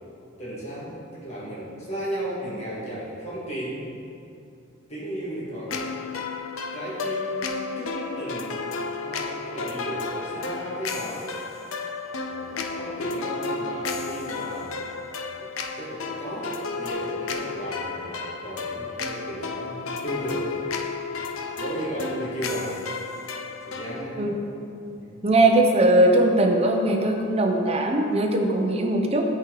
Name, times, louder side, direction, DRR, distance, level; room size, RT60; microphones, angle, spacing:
voice 1, 0.4-3.9 4.9-5.9 6.7-7.5 7.8-8.6 9.0-11.3 12.2-14.8 15.4-20.5 21.1-21.3 21.6-22.8 23.7-24.4 25.0-25.2, right 1 dB, 35° left, -7 dB, 1.9 m, -35 dB
sound 1, 5.7-24.0, left 4 dB, 90° left, 0.6 m, -32 dB
voice 2, 25.2-29.2, right 1 dB, 30° right, 2 dB, 0.7 m, -20 dB
12.5 x 4.4 x 3.9 m, 2.6 s
head